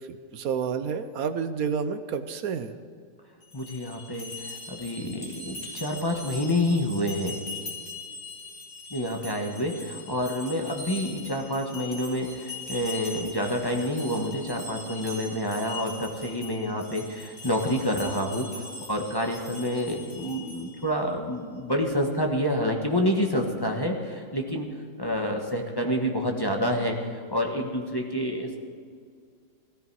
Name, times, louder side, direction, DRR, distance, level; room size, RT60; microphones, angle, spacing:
voice 1, 0.1-2.7, right 6 dB, 65° right, 10 dB, 1.0 m, -30 dB
sound 1, 3.4-20.9, left 3 dB, 55° left, 3.1 m, -41 dB
voice 2, 3.5-7.4 8.9-24.7 25.0-28.6, equal, 15° left, 1 dB, 1.1 m, -28 dB
16.5 x 13.5 x 4.7 m, 2.2 s
omnidirectional pair, 1.9 m